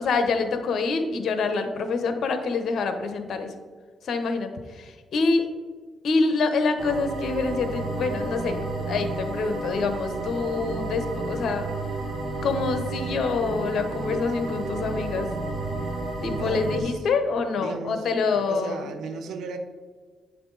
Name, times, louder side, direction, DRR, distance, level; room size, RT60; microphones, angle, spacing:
voice 1, 0.0-3.5 4.0-5.5 6.0-8.6 8.9-11.7 12.4-15.3 16.2-18.8, left 4 dB, 65° left, 7 dB, 1.0 m, -26 dB
sound 1, 6.8-16.8, right 2 dB, 60° right, 2.0 m, -31 dB
voice 2, 16.3-17.1 17.6-18.1 18.3-19.6, right 4 dB, 80° right, 7 dB, 0.8 m, -35 dB
9.1 x 5.9 x 4.0 m, 1.5 s
cardioid pair, 85°, 0 cm